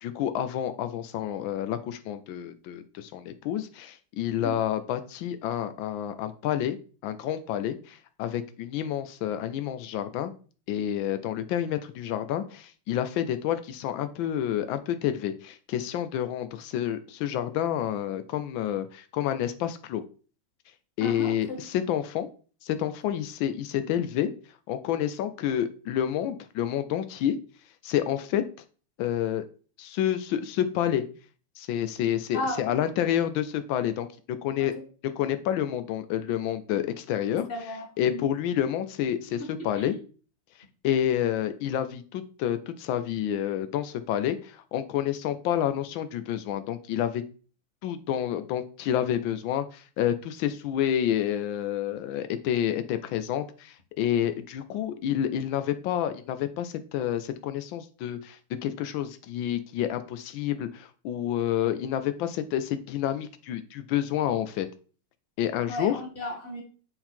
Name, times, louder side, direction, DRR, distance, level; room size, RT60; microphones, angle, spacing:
voice 1, 0.0-6.8 7.0-10.3 10.7-20.0 21.0-22.3 22.6-24.3 24.7-27.4 27.8-28.4 29.0-29.5 29.8-31.0 31.6-34.7 35.0-37.5 38.0-39.9 40.8-47.2 47.8-64.7 65.4-66.0, left 10 dB, 85° left, 10 dB, 1.4 m, -29 dB
voice 2, 21.0-21.6 32.3-32.6 37.5-38.3 39.8-40.0 65.7-66.6, left 1 dB, 30° left, 1 dB, 1.9 m, -34 dB
8.3 x 3.9 x 4.4 m, 0.39 s
omnidirectional pair, 2.1 m